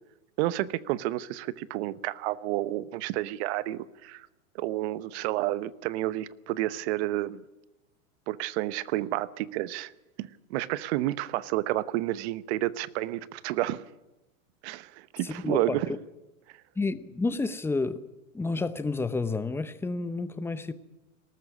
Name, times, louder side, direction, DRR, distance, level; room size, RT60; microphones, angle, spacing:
voice 1, 0.4-4.3 4.5-7.4 8.3-9.9 10.2-13.8 14.6-15.9, right 16 dB, 50° right, 17 dB, 1.0 m, -30 dB
voice 2, 15.2-15.8 16.8-18.0 18.3-20.7, left 3 dB, 5° left, 13 dB, 0.8 m, -30 dB
19.5 x 14.0 x 9.7 m, 1.0 s
hypercardioid pair, 120°, 42 cm